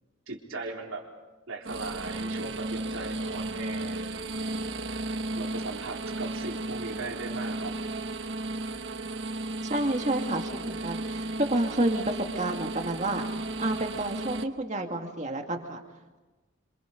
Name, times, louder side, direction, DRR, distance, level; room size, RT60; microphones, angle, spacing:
voice 1, 0.3-1.1 1.5-4.3 5.3-7.8, right 3 dB, 75° right, 1 dB, 3.8 m, -38 dB
sound 1, 1.6-14.4, right 2 dB, 60° right, 1.1 m, -34 dB
voice 2, 9.6-13.2 13.6-15.8, right 1 dB, 35° right, 4 dB, 2.1 m, -29 dB
28.0 x 26.5 x 5.3 m, 1.2 s
head